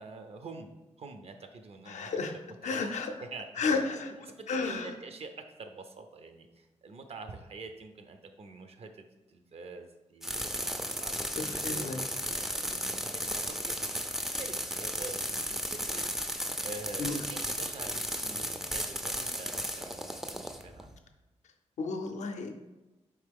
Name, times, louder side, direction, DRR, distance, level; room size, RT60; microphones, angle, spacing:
voice 1, 0.0-2.2 2.6-2.9 3.2-3.7 4.1-16.2 16.6-20.9, right 3 dB, 55° right, 7 dB, 0.5 m, -47 dB
voice 2, 1.9-2.3 2.6-3.1 3.6-4.1 4.5-4.9 11.3-12.0 17.0-17.2 21.8-22.5, left 4 dB, 75° left, 5 dB, 0.5 m, -32 dB
sound 1, 10.2-21.0, equal, 5° right, 0.3 m, -35 dB
4.5 x 3.0 x 3.5 m, 1.0 s
cardioid pair, 75°, 12 cm